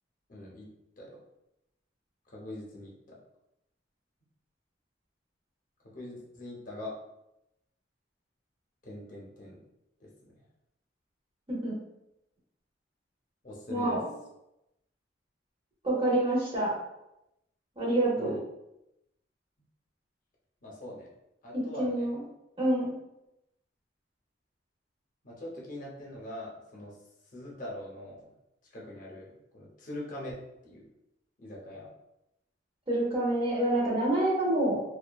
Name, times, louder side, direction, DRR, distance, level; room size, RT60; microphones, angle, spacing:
voice 1, 0.3-0.7 1.0-1.2 2.3-3.2 5.9-6.9 8.8-9.6 10.0-10.1 13.4-14.0 18.2-18.4 20.6-21.1 21.4-22.1 25.2-26.9 27.3-28.2 28.7-30.4 30.6-30.8 31.4-31.9, left 1 dB, 45° left, -3 dB, 0.6 m, -42 dB
voice 2, 13.7-14.0 15.8-16.7 17.8-18.4 21.5-22.2 22.6-22.9 32.9-34.8, right 1 dB, 30° right, -4 dB, 0.7 m, -27 dB
2.8 x 2.2 x 2.2 m, 0.87 s
head